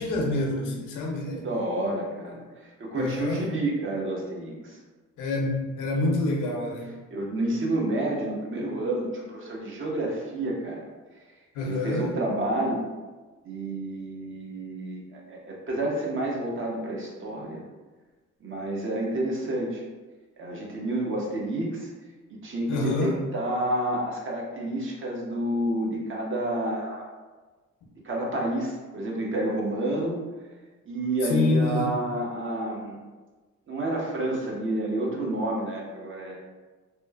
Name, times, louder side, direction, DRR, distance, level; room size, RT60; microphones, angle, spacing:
voice 1, 0.0-1.4 2.9-3.4 5.2-6.9 11.6-12.1 22.7-23.2 31.3-31.9, left 2 dB, 85° left, 0 dB, 0.6 m, -27 dB
voice 2, 1.3-4.8 7.1-10.8 11.6-12.9 13.4-17.6 18.4-19.8 20.4-21.9 22.3-27.1 28.0-30.2 30.9-33.0 33.7-36.4, right 1 dB, 40° right, -2 dB, 0.7 m, -29 dB
2.9 x 2.1 x 2.3 m, 1.3 s
cardioid pair, 90°, 30 cm